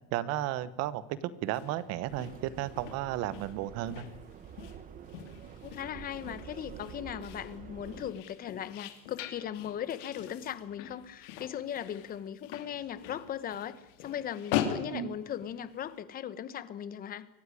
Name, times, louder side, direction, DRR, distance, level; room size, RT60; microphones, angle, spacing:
voice 1, 0.1-4.0 14.9-15.1, right 13 dB, 40° right, 17 dB, 1.1 m, -33 dB
sound 1, 1.4-15.9, left 10 dB, 70° left, 3.0 m, -41 dB
Subway metro underground, 2.0-8.1, right 8 dB, 20° right, 0.9 m, -48 dB
voice 2, 5.6-13.7 14.0-17.3, left 10 dB, 25° left, 15 dB, 1.0 m, -38 dB
23.5 x 15.0 x 9.9 m, 1.0 s
supercardioid pair, 165°, 37 cm